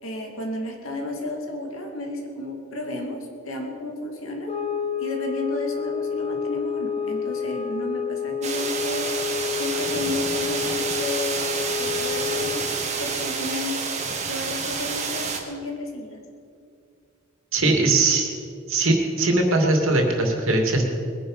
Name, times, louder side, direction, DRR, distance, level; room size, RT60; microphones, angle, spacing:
voice 1, 0.0-3.2 3.5-4.5 5.0-11.5 11.8-14.0 14.3-16.2, left 1 dB, 70° left, 2 dB, 2.5 m, -33 dB
sound 1, 4.5-12.8, left 6 dB, 30° left, 1.1 m, -29 dB
sound 2, 8.4-15.4, right 4 dB, 35° right, 1.7 m, -29 dB
voice 2, 17.5-18.3 18.7-20.8, right 2 dB, 65° right, 2 dB, 2.6 m, -20 dB
21.5 x 10.0 x 5.6 m, 2.4 s
head